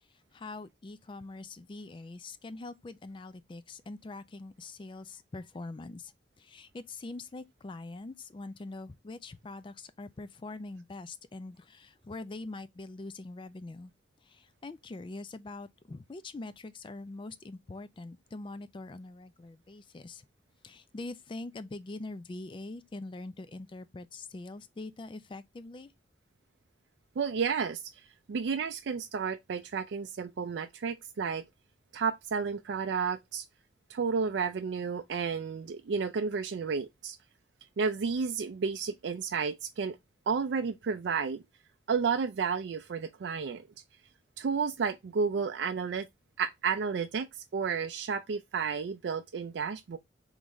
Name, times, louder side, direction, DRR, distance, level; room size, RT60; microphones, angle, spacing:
voice 1, 0.3-6.1 6.4-13.9 14.2-20.2 20.6-25.9, left 2 dB, 25° left, 0.4 m, -43 dB
voice 2, 27.2-27.8 28.3-31.4 31.9-33.4 33.9-37.2 37.8-40.0 40.3-41.4 41.9-43.6 44.4-46.1 46.4-50.0, right 5 dB, 70° right, 0.4 m, -31 dB
3.9 x 3.2 x 3.4 m
head